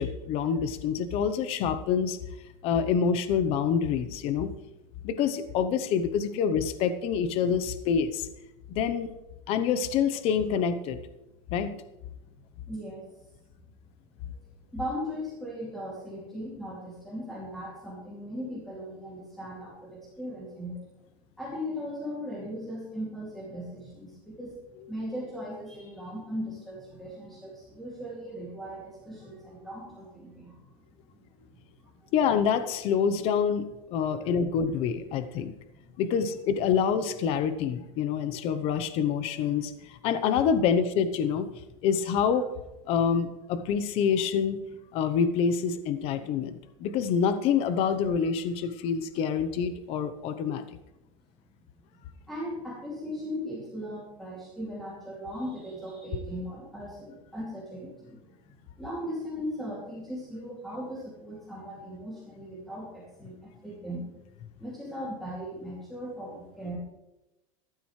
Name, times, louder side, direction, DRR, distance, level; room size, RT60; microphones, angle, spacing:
voice 1, 0.0-2.2 2.6-4.5 5.0-8.3 8.7-9.1 9.5-11.0 11.5-11.7 32.1-35.5 36.0-41.5 41.8-42.5 42.9-44.6 44.9-50.6, left 7 dB, 35° left, 11 dB, 0.8 m, -26 dB
voice 2, 12.7-13.3 14.3-14.4 14.7-20.8 21.4-24.6 24.9-32.1 34.2-34.3 46.2-46.3 52.3-58.2 58.8-64.3 64.6-66.8, equal, ahead, -7 dB, 2.5 m, -38 dB
14.0 x 12.0 x 3.2 m, 0.97 s
supercardioid pair, 165°, 16 cm